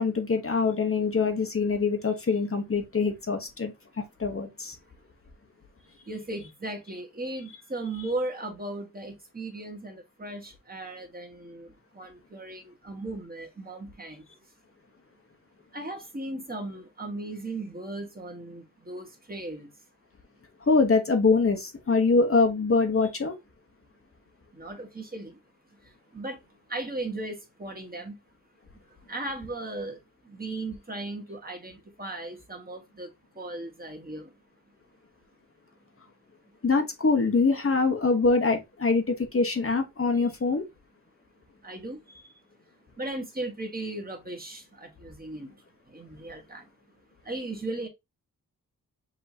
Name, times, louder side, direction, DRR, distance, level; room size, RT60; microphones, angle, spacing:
voice 1, 0.0-3.7 4.2-4.8 20.7-23.3 36.6-40.6, left 4 dB, 40° left, 1.0 m, -24 dB
voice 2, 6.1-14.3 15.7-19.7 24.5-25.4 25.8-26.4 26.7-28.2 28.9-34.4 41.6-42.4 43.0-46.7 47.2-47.9, right 2 dB, 25° right, 1.4 m, -37 dB
5.6 x 2.9 x 2.7 m
cardioid pair, 70°, 35 cm